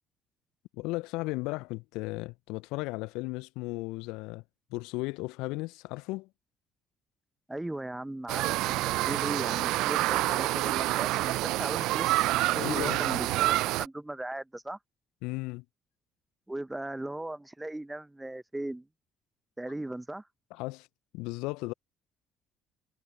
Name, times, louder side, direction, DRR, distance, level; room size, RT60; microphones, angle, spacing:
voice 1, 0.7-4.4 4.7-6.3 12.5-13.2 15.2-15.6 20.5-20.9 21.1-21.7, left 23 dB, 70° left, 0.5 m, -35 dB
voice 2, 7.5-12.3 12.6-14.8 16.5-18.9 19.6-20.3, right 1 dB, 10° right, 0.8 m, -38 dB
sound 1, 8.3-13.9, right 18 dB, 65° right, 0.5 m, -27 dB
figure-of-eight pair, 50°, 0 cm